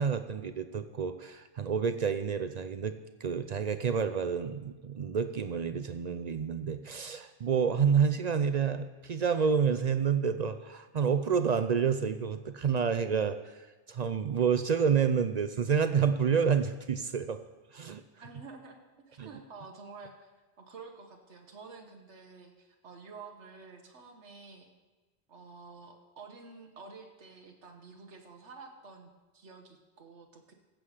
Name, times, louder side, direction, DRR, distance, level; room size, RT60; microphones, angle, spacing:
voice 1, 0.0-17.4 17.7-18.0 19.2-19.3, right 6 dB, 50° right, 10 dB, 0.5 m, -29 dB
voice 2, 18.2-18.8 19.1-20.3 20.6-24.7 25.3-30.5, right 4 dB, 80° right, 3 dB, 1.4 m, -50 dB
15.0 x 7.8 x 4.9 m, 1.2 s
omnidirectional pair, 1.1 m